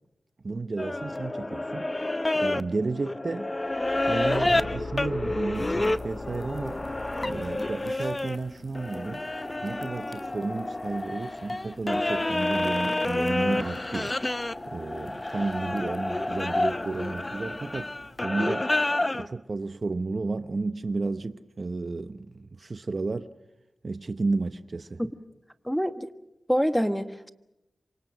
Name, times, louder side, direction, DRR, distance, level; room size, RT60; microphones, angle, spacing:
voice 1, 0.4-1.9 2.3-3.5 4.1-6.8 7.2-9.2 9.6-14.2 14.7-17.9 18.2-18.7 19.1-23.3 23.8-25.0, right 3 dB, 50° right, 0.8 m, -32 dB
sound 1, 0.8-8.4 8.7-19.3, left 2 dB, 25° left, 0.9 m, -29 dB
Car / Engine, 3.6-8.2, left 3 dB, 75° left, 2.1 m, -42 dB
sound 2, 5.5-18.3, left 2 dB, 45° left, 3.6 m, -51 dB
voice 2, 25.6-26.1 26.5-27.3, equal, ahead, 1.4 m, -25 dB
27.5 x 24.5 x 6.2 m
cardioid pair, 60°, 0 cm